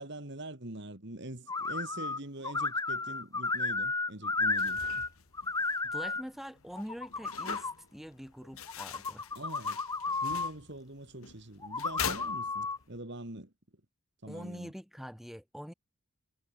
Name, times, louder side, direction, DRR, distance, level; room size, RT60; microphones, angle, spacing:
voice 1, 0.0-5.1 9.4-9.8 10.2-13.5 14.2-14.7, right 1 dB, 55° right, 2.6 m, -44 dB
sound 1, 1.5-2.2 2.4-5.1 5.3-6.2 6.8-7.7 8.7-10.5 11.6-12.8, left 3 dB, 15° left, 1.4 m, -33 dB
sound 2, 4.4-13.0, left 8 dB, 80° left, 1.7 m, -44 dB
voice 2, 5.8-9.3 14.3-15.7, equal, ahead, 6.5 m, -44 dB
head